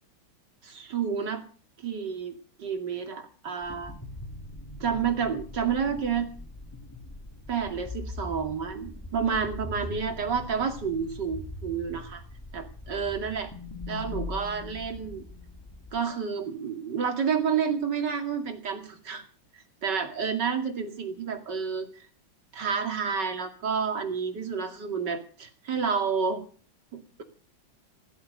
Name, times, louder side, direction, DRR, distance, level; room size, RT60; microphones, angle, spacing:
voice 1, 0.6-1.4 1.8-3.9 4.8-6.3 7.5-12.2 12.5-13.5 13.9-15.2 15.9-19.2 19.5-22.1 22.5-26.4 26.9-27.2, right 6 dB, 60° right, 5 dB, 3.0 m, -30 dB
sound 1, 3.6-16.0, left 2 dB, 10° left, 2.0 m, -41 dB
16.5 x 11.5 x 6.6 m, 0.41 s
omnidirectional pair, 2.1 m